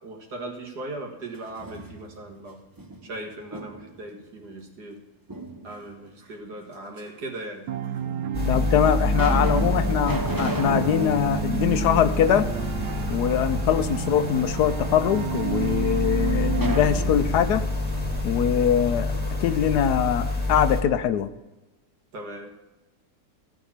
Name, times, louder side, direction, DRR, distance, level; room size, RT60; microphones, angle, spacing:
voice 1, 0.0-2.6 3.0-5.0 5.6-8.0 22.1-22.5, right 2 dB, 70° right, 1 dB, 2.4 m, -38 dB
sound 1, 1.3-2.3 2.8-4.0 5.3-6.1 7.0-7.1 7.9-8.0 8.6-12.7 13.1-13.2 16.5-19.3, right 2 dB, 20° right, 0.7 m, -34 dB
sound 2, 7.7-16.8, right 10 dB, 90° right, 1.3 m, -31 dB
sound 3, 8.3-20.8, left 2 dB, 5° left, 1.6 m, -28 dB
voice 2, 8.5-12.5 13.1-17.7 18.2-19.1 19.4-21.3, left 9 dB, 75° left, 11 dB, 1.2 m, -23 dB
15.0 x 5.1 x 7.2 m, 1.1 s
omnidirectional pair, 1.8 m